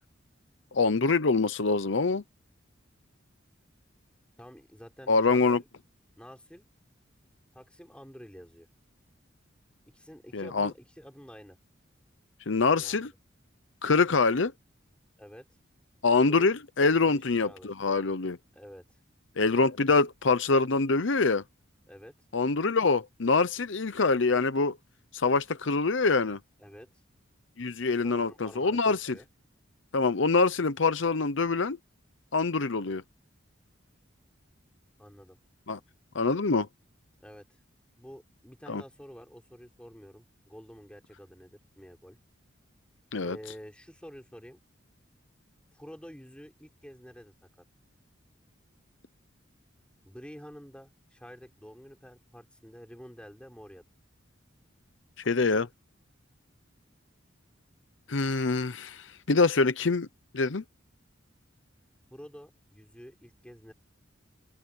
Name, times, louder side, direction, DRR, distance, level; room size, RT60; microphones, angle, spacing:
voice 1, 0.7-2.2 5.1-5.6 10.3-10.7 12.5-13.1 13.8-14.5 16.0-18.4 19.4-21.4 22.3-24.8 25.1-26.4 27.6-29.2 29.9-31.8 32.3-33.0 35.7-35.8 36.1-36.7 38.7-38.8 43.1-43.4 55.2-55.7 58.1-60.1 60.3-60.6, left 4 dB, 70° left, 0.8 m, -25 dB
voice 2, 4.4-5.7 6.2-6.6 7.5-8.7 9.9-11.6 12.7-13.1 15.2-15.5 16.1-16.5 17.0-17.7 18.5-18.8 21.9-22.1 26.6-26.9 28.0-29.3 35.0-35.4 37.2-37.5 38.0-42.2 43.2-44.6 45.7-47.3 50.0-53.8 62.1-63.7, equal, 5° left, 5.7 m, -49 dB
open air
head